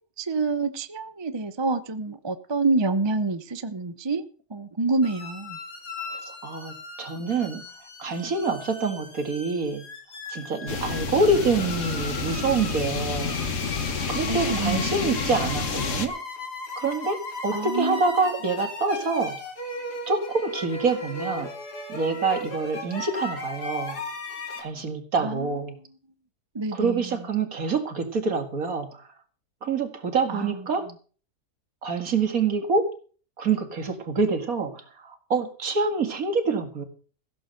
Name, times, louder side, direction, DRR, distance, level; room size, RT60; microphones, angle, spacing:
voice 1, 0.2-4.2 4.5-5.6 14.3-15.0 17.5-18.0 25.2-25.5 26.5-27.1 30.3-30.5, right 3 dB, 25° right, 0.6 m, -27 dB
sound 1, 5.0-24.6, left 2 dB, 80° left, 3.4 m, -37 dB
voice 2, 6.1-7.6 8.0-9.9 10.3-13.4 14.1-16.2 16.8-19.4 20.1-21.5 21.9-24.0 24.6-25.8 26.7-29.1 29.6-30.9 31.8-32.9 33.4-36.8, right 4 dB, 60° right, 2.4 m, -26 dB
sound 2, 10.7-16.1, left 4 dB, 50° left, 1.6 m, -29 dB
15.5 x 7.6 x 6.6 m
omnidirectional pair, 1.7 m